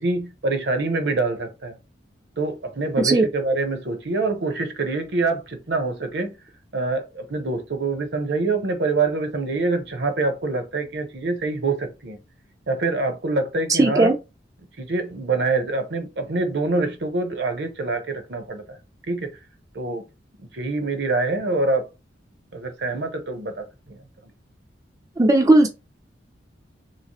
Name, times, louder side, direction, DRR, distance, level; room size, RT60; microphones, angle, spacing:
voice 1, 0.0-1.7 2.4-6.3 6.7-12.2 12.7-14.1 14.8-18.8 19.1-19.3 19.7-20.0 20.5-21.9 22.5-24.0, right 3 dB, 65° right, 0.8 m, -25 dB
voice 2, 13.7-14.1 25.2-25.7, right 2 dB, 20° right, 0.4 m, -16 dB
2.9 x 2.9 x 2.9 m
head